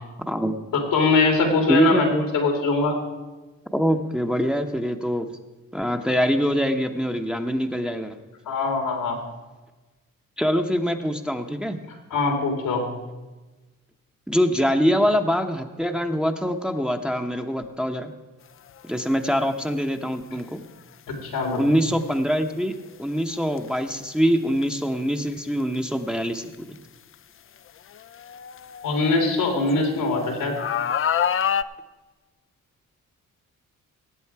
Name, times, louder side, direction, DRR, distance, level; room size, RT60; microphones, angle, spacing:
voice 1, 0.2-0.6 1.7-2.2 3.7-5.3 5.7-8.2 10.4-11.8 14.3-18.1 18.8-20.6 21.6-26.5, equal, ahead, 5 dB, 0.9 m, -24 dB
voice 2, 0.7-2.1 2.3-3.0 8.5-9.2 12.1-12.8 21.1-21.6 28.8-30.6, left 3 dB, 90° left, 3 dB, 2.8 m, -22 dB
sound 1, 18.8-19.0 20.4-20.5 23.5-23.7 24.6-24.7 25.7-25.8 26.5-26.6 27.9-29.7 30.6-31.6, left 8 dB, 40° left, 0.5 m, -26 dB
17.0 x 8.0 x 4.7 m, 1.2 s
cardioid pair, 70°, 33 cm